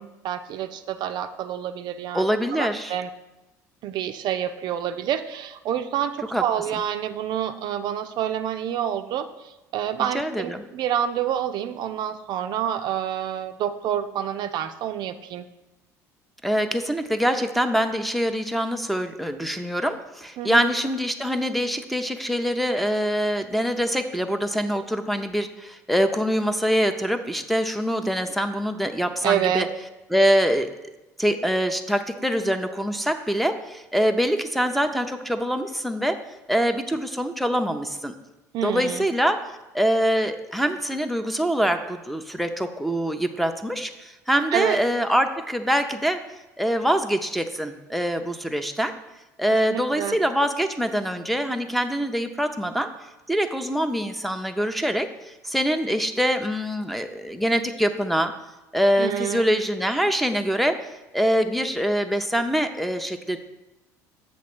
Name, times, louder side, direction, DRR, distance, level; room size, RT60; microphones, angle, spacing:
voice 1, 0.0-2.2 2.5-3.1 3.8-15.5 20.4-20.7 29.2-29.7 38.5-39.1 44.5-44.8 49.7-50.2 59.0-59.5, right 10 dB, 55° right, 9 dB, 0.4 m, -28 dB
voice 2, 2.1-2.9 6.3-6.4 10.0-10.6 16.4-29.7 30.1-30.7 31.2-36.2 36.5-38.1 38.6-39.4 39.7-46.2 46.6-48.9 49.4-52.9 53.3-58.3 58.7-60.8 61.1-63.4, equal, ahead, 5 dB, 0.6 m, -24 dB
7.3 x 3.2 x 6.1 m, 1.0 s
hypercardioid pair, 65°, 9 cm